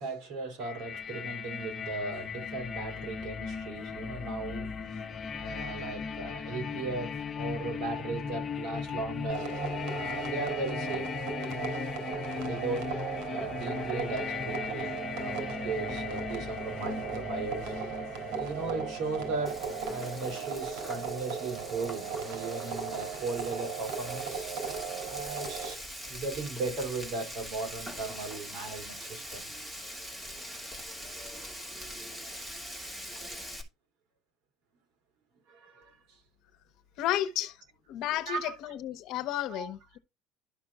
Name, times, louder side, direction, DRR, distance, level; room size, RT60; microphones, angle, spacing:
voice 1, 0.0-5.0 5.3-9.5 9.8-11.1 11.4-11.7 12.3-12.9 13.3-17.7 18.3-24.5 25.0-29.5 35.5-36.2 38.3-38.5 39.5-39.7, right 3 dB, 65° right, 4.1 m, -37 dB
sound 1, 0.6-20.4, left 6 dB, 30° left, 1.1 m, -38 dB
sound 2, 9.3-25.7, right 6 dB, 85° right, 3.0 m, -37 dB
Frying (food), 19.5-33.6, equal, 15° right, 2.6 m, -42 dB
voice 2, 37.0-37.6 37.9-40.0, left 12 dB, 65° left, 1.1 m, -32 dB
12.5 x 6.0 x 2.5 m
cardioid pair, 150°, 0 cm